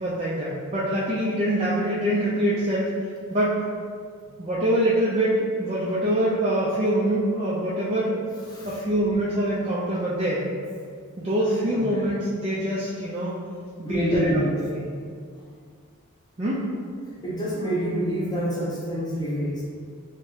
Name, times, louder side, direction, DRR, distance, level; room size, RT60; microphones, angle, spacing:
voice 1, 0.0-2.9 3.3-3.6 4.4-8.2 8.6-10.4 11.2-13.4 13.8-14.8 16.4-16.6, right 1 dB, 30° right, -8 dB, 0.4 m, -24 dB
voice 2, 13.8-14.5 17.2-19.6, equal, 20° left, -7 dB, 0.8 m, -26 dB
3.3 x 3.0 x 3.2 m, 2.1 s
head